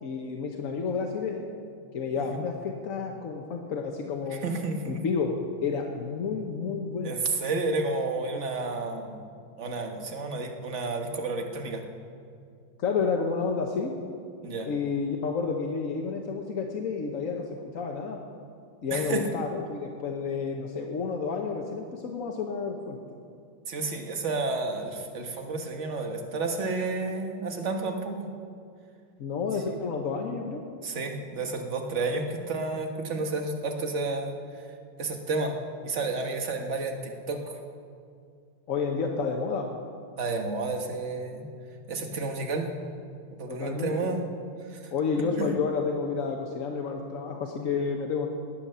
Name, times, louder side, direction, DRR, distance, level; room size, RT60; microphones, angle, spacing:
voice 1, 0.0-1.5 1.9-4.4 4.9-7.2 12.8-14.0 14.6-17.5 17.7-18.2 18.8-23.0 29.2-30.6 32.1-32.2 38.7-39.8 43.5-44.2 44.9-48.3, left 5 dB, 50° left, 1 dB, 1.1 m, -30 dB
voice 2, 4.3-5.0 7.0-9.2 9.6-11.8 14.4-14.7 18.9-19.2 23.7-28.3 30.8-34.3 35.0-35.5 35.8-37.6 40.2-41.5 41.9-42.7 43.4-44.2 44.7-44.9 45.4-45.5, right 3 dB, 40° right, 4 dB, 1.4 m, -31 dB
18.5 x 9.1 x 6.8 m, 2.3 s
omnidirectional pair, 2.4 m